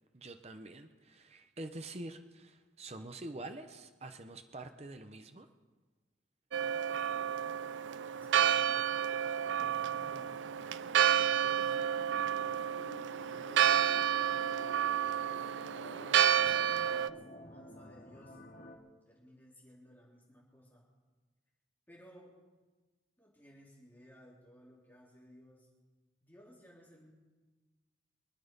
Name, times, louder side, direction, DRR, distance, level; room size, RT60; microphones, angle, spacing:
voice 1, 0.1-5.5, right 2 dB, 35° right, 8 dB, 0.8 m, -46 dB
Church bell, 6.5-17.1, right 9 dB, 90° right, 0.5 m, -30 dB
voice 2, 8.1-8.8 9.5-10.3 11.1-11.8 12.4-12.7 13.1-14.6 15.0-18.4 19.1-20.8 21.9-22.3 23.2-25.7 26.2-27.1, equal, 10° left, -5 dB, 3.4 m, -59 dB
sound 1, 9.4-18.8, left 1 dB, 50° left, 1.9 m, -53 dB
24.5 x 9.4 x 5.4 m, 1.3 s
head